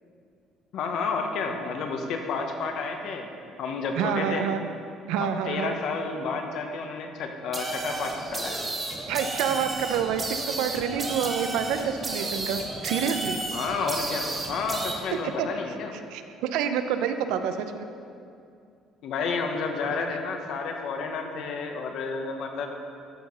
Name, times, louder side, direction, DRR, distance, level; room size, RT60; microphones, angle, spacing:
voice 1, 0.7-3.3 3.6-4.4 5.2-8.6 13.5-15.9 19.0-22.7, left 4 dB, 60° left, 3 dB, 1.2 m, -31 dB
voice 2, 4.0-4.6 5.1-5.8 9.1-13.4 15.4-15.5 16.1-17.9, right 8 dB, 90° right, 9 dB, 0.6 m, -28 dB
sound 1, 7.5-14.9, right 2 dB, 20° right, 1.1 m, -32 dB
13.5 x 4.8 x 5.5 m, 2.5 s
cardioid pair, 145°, 0 cm